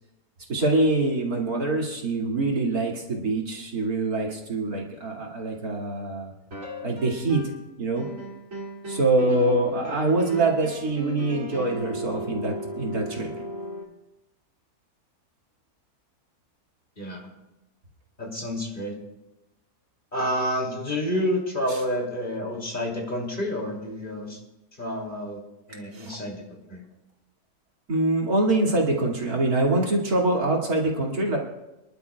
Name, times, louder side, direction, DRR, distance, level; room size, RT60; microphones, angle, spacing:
voice 1, 0.5-6.3 6.8-7.5 7.8-8.1 8.9-13.3 21.7-21.8 25.9-26.2 27.9-31.4, right 2 dB, 75° right, -1 dB, 2.8 m, -24 dB
sound 1, 6.5-7.7 8.0-13.8, right 1 dB, 60° right, 2.9 m, -36 dB
voice 2, 18.2-18.9 20.1-24.4 24.8-25.4 25.7-26.4 26.7-26.8, equal, 35° left, -1 dB, 2.9 m, -29 dB
28.0 x 11.5 x 2.3 m, 0.96 s
omnidirectional pair, 1.6 m